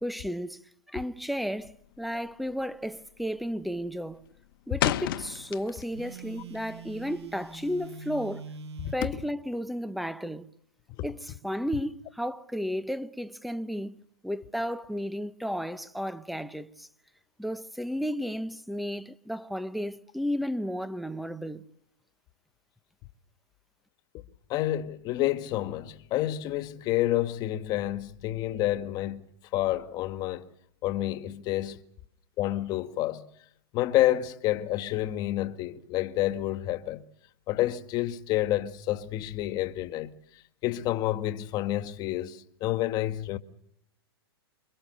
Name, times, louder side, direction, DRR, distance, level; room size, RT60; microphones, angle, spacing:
voice 1, 0.0-4.2 4.7-8.5 8.9-10.5 11.0-16.9 17.4-21.7, equal, ahead, 1.0 m, -33 dB
Chair Thrown Crash bolt fell out after crash, 1.6-2.0 2.3-2.6 3.0-3.4 3.7-6.1 6.4-7.8, left 13 dB, 60° left, 1.2 m, -32 dB
Telephone, 5.9-9.1, right 4 dB, 85° right, 2.1 m, -43 dB
voice 2, 8.8-9.2 24.1-24.2 24.5-29.2 29.5-30.4 30.8-31.8 32.4-33.3 33.7-37.0 37.5-40.1 40.6-43.4, left 14 dB, 30° left, 1.9 m, -29 dB
27.5 x 25.0 x 6.7 m
hypercardioid pair, 150°, 13 cm